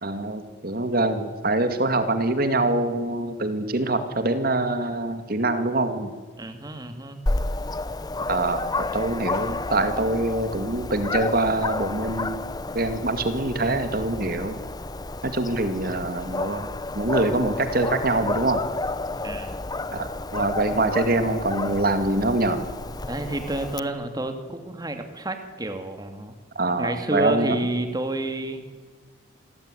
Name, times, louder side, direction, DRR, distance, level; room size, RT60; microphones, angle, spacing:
voice 1, 0.0-6.1 8.3-12.4 12.7-14.6 15.2-16.7 16.9-18.6 19.9-22.6 26.6-27.6, right 2 dB, 45° right, 9 dB, 2.3 m, -24 dB
voice 2, 6.4-7.2 19.2-19.6 23.1-26.3 26.8-28.6, right 2 dB, 20° right, 7 dB, 2.2 m, -30 dB
Dog, 7.3-23.8, left 2 dB, 20° left, 0.7 m, -31 dB
28.0 x 19.0 x 9.9 m, 1.5 s
head